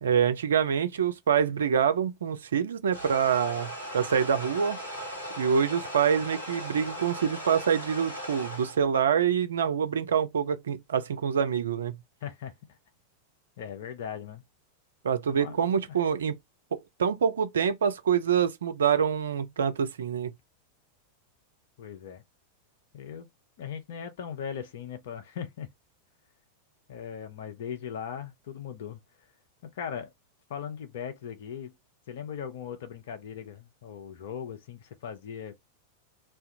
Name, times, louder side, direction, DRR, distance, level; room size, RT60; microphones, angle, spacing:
voice 1, 0.0-4.8 5.4-12.0 15.0-16.4 16.7-20.3, right 7 dB, 65° right, 0.4 m, -26 dB
sound 1, 2.9-8.8, equal, 80° left, 1.1 m, -38 dB
voice 2, 12.2-12.5 13.6-14.4 15.3-15.7 21.8-22.2 22.9-23.3 23.6-25.7 26.9-29.0 29.6-30.1 30.5-31.7 32.1-35.5, left 8 dB, 55° left, 0.6 m, -38 dB
2.4 x 2.2 x 2.7 m
figure-of-eight pair, 90°, 0 cm